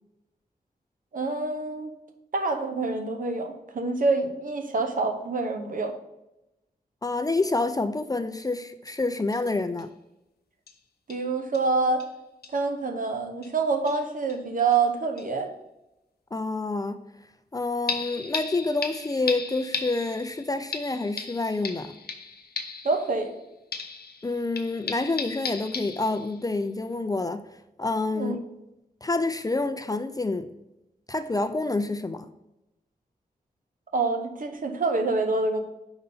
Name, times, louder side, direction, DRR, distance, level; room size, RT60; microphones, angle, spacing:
voice 1, 1.1-1.9 2.3-5.9 11.1-12.0 12.5-15.5 22.8-23.3 28.1-28.4 33.9-35.6, right 3 dB, 60° right, 0.9 m, -26 dB
voice 2, 7.0-9.9 16.3-17.0 17.5-21.9 24.2-27.4 27.8-28.4 29.0-30.5 31.1-32.3, left 3 dB, 25° left, 0.4 m, -28 dB
sound 1, 8.4-8.5 8.9-9.0 9.3-9.4 9.8-9.9 10.7-10.8 11.1-11.3 11.5-11.7 12.0-12.1 12.4-12.6 13.4-13.5 13.9-14.4 14.7-14.8 15.2-15.3 17.9-23.4 23.7-26.5 26.9-27.0, left 5 dB, 85° left, 0.7 m, -36 dB
5.3 x 4.0 x 5.5 m
wide cardioid pair, 85°, 16 cm